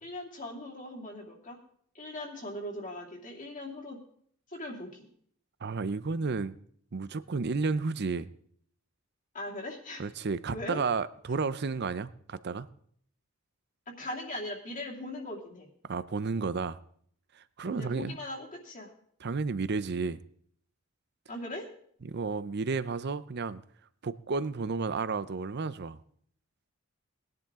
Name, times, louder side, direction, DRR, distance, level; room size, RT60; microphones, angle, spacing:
voice 1, 0.0-1.6 1.9-4.0 4.5-5.1 9.3-10.0 10.5-10.8 13.9-15.7 17.6-18.9 21.3-21.7, left 1 dB, 40° left, -1 dB, 2.6 m, -39 dB
voice 2, 5.6-6.5 6.9-8.3 10.0-12.7 15.8-16.8 17.4-18.2 19.2-20.2 22.0-23.6 24.0-26.0, right 4 dB, 55° right, 15 dB, 0.6 m, -32 dB
19.5 x 10.5 x 3.7 m, 0.62 s
head